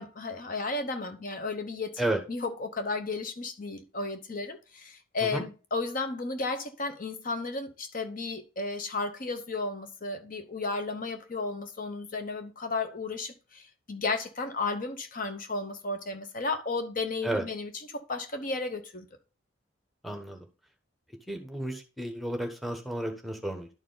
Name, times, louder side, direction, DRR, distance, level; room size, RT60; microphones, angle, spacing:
voice 1, 0.0-19.1, left 3 dB, 40° left, 0.9 m, -34 dB
voice 2, 20.0-20.4 21.3-23.7, right 1 dB, ahead, 1.1 m, -32 dB
11.0 x 4.6 x 3.9 m
head